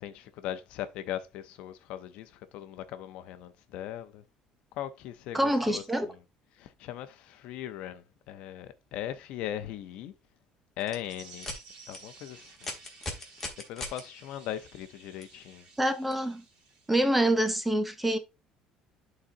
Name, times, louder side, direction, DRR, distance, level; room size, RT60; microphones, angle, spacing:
voice 1, 0.0-4.2 4.7-6.2 6.5-10.1 10.8-11.5 11.9-12.8 13.7-15.7, left 11 dB, 65° left, 0.7 m, -39 dB
voice 2, 5.3-6.1 15.8-16.4 16.9-18.2, right 1 dB, 5° right, 0.5 m, -26 dB
sound 1, 10.8-10.9 11.4-11.6 11.9-12.0 12.6-14.0 15.2-15.3 16.1-16.2, left 2 dB, 10° left, 1.3 m, -37 dB
sound 2, 11.0-17.5, right 3 dB, 55° right, 2.3 m, -53 dB
11.5 x 4.0 x 2.7 m
cardioid pair, 175°, 2 cm